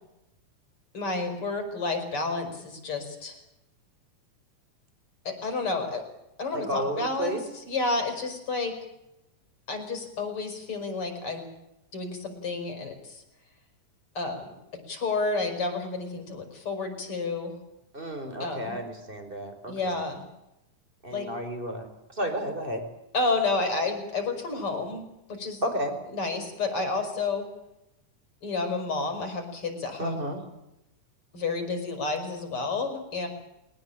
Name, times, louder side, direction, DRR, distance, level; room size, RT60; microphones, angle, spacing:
voice 1, 0.9-3.4 5.2-6.0 6.4-8.7 9.7-11.5 11.9-13.2 14.1-14.5 14.9-17.5 18.4-18.8 19.7-20.2 21.1-21.3 23.1-25.6 26.1-27.5 28.4-30.2 31.3-33.3, left 3 dB, 45° left, 6 dB, 6.2 m, -30 dB
voice 2, 6.5-7.4 17.9-20.0 21.0-22.8 25.6-26.0 30.0-30.4, equal, 15° right, 6 dB, 4.8 m, -32 dB
22.0 x 19.5 x 8.8 m, 0.89 s
omnidirectional pair, 3.5 m